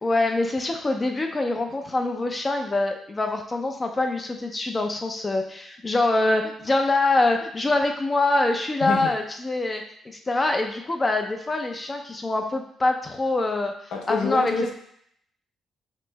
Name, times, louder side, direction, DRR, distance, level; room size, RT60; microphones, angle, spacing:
voice 1, 0.0-13.7 14.1-14.7, left 2 dB, 25° left, 4 dB, 0.4 m, -24 dB
voice 2, 13.9-14.7, left 4 dB, 85° left, 1 dB, 0.7 m, -26 dB
5.0 x 2.0 x 3.3 m, 0.68 s
cardioid pair, 90°, 0 cm